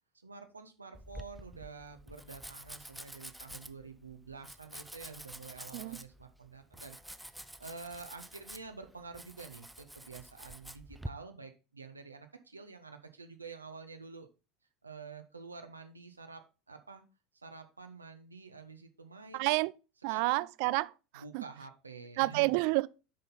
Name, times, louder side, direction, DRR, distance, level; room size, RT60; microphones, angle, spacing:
voice 1, 0.2-14.3 14.8-17.0 17.3-19.5 20.1-20.4 21.1-22.6, right 4 dB, 85° right, 0.7 m, -49 dB
Domestic sounds home sounds, 0.9-11.1, right 1 dB, 5° right, 0.6 m, -48 dB
voice 2, 19.3-19.7 20.0-21.4 22.2-22.9, right 22 dB, 60° right, 0.3 m, -30 dB
7.5 x 5.3 x 4.1 m
figure-of-eight pair, 75°, 0 cm